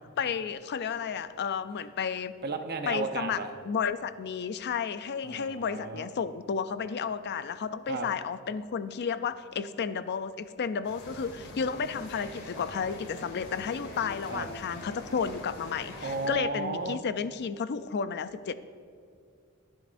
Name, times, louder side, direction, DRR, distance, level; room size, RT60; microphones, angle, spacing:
voice 1, 0.2-2.4 2.8-18.5, left 6 dB, 50° left, 13 dB, 0.4 m, -32 dB
voice 2, 2.4-3.5 5.2-6.1 7.9-8.1 14.3-14.5 16.0-17.0, right 3 dB, 50° right, 6 dB, 0.8 m, -33 dB
sound 1, 10.8-16.3, left 1 dB, 75° left, 2.6 m, -44 dB
21.5 x 7.6 x 2.6 m, 2.4 s
head